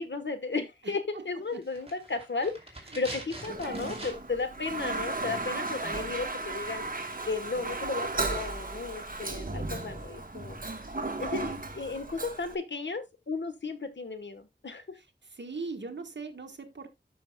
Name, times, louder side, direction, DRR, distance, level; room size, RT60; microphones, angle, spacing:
voice 1, 0.0-6.9 7.2-10.6 11.2-15.0, left 4 dB, 85° left, 1.2 m, -34 dB
sound 1, 1.6-4.5 4.7-4.8, right 1 dB, 35° right, 2.7 m, -43 dB
Toilet flush, 3.4-12.6, right 2 dB, 50° right, 1.3 m, -35 dB
voice 2, 15.4-16.9, right 4 dB, 80° right, 1.3 m, -39 dB
12.5 x 6.0 x 2.2 m
wide cardioid pair, 55°, 18 cm